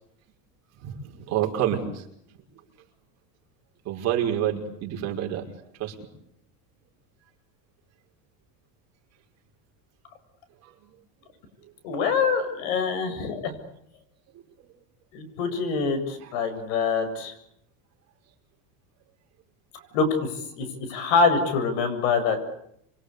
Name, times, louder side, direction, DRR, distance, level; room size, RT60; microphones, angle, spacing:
voice 1, 0.8-2.0 3.9-5.4 5.8-6.0 10.6-10.7 14.3-14.4 16.2-16.3, right 10 dB, 40° right, 1 dB, 5.6 m, -28 dB
voice 2, 11.8-13.5 15.1-17.3 19.9-22.4, left 5 dB, 70° left, 11 dB, 7.8 m, -25 dB
28.5 x 24.0 x 8.4 m, 0.75 s
cardioid pair, 155°, 41 cm